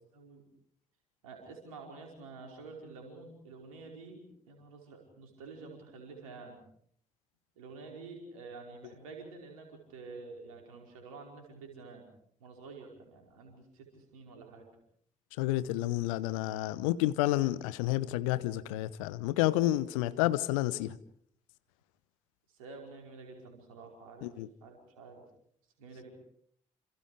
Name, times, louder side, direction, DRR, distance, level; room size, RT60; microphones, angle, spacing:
voice 1, 0.1-0.4 1.2-4.2 4.5-6.6 7.6-12.1 12.4-14.7 19.8-20.1 22.5-24.3 24.6-25.2 25.8-26.1, right 4 dB, 75° right, 5.0 m, -49 dB
voice 2, 15.4-21.0 24.2-24.5, left 16 dB, 70° left, 0.9 m, -30 dB
28.0 x 28.0 x 5.0 m
figure-of-eight pair, 40°, 18 cm